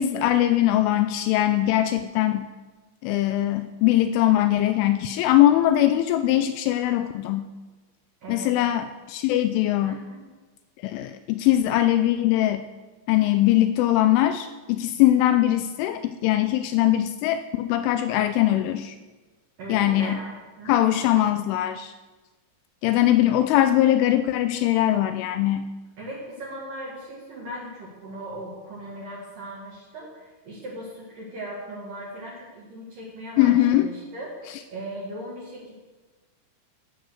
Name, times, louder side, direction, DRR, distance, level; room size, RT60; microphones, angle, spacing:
voice 1, 0.0-2.5 3.0-7.5 8.3-10.0 10.8-12.7 13.1-19.0 19.7-20.2 20.7-21.9 22.8-25.7 33.4-33.9, left 13 dB, 85° left, 10 dB, 2.8 m, -21 dB
voice 2, 8.2-8.5 9.8-10.3 19.6-21.0 26.0-35.7, right 1 dB, 55° right, -5 dB, 3.0 m, -38 dB
13.5 x 8.0 x 6.3 m, 1.3 s
omnidirectional pair, 5.9 m